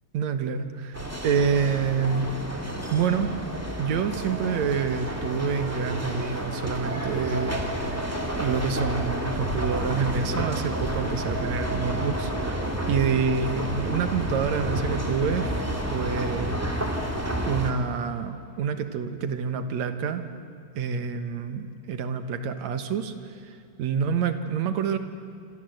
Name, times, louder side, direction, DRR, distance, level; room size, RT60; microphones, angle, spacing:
voice 1, 0.1-2.2 2.9-3.3 3.8-8.1 8.3-16.6 17.4-20.2 20.8-23.1 23.4-25.0, right 6 dB, 60° right, 8 dB, 2.2 m, -27 dB
sound 1, 0.9-17.7, right 1 dB, 5° right, 1.6 m, -30 dB
27.0 x 26.0 x 7.9 m, 2.5 s
omnidirectional pair, 4.4 m